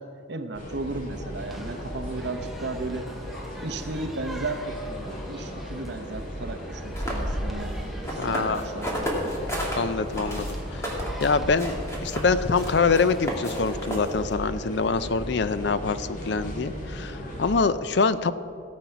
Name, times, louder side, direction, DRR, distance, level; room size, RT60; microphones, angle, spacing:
voice 1, 0.0-3.1 3.6-9.4, right 2 dB, 60° right, 7 dB, 0.9 m, -35 dB
sound 1, 0.5-17.6, equal, 45° left, 2.0 m, -37 dB
sound 2, 1.4-13.8, equal, ahead, 0.7 m, -44 dB
sound 3, 6.8-9.8 10.1-14.3, equal, 15° left, 2.3 m, -32 dB
voice 2, 8.2-8.6 9.8-10.8 11.2-11.7 12.0-18.3, left 4 dB, 60° left, 13 dB, 0.5 m, -25 dB
17.5 x 7.6 x 5.8 m, 2.4 s
head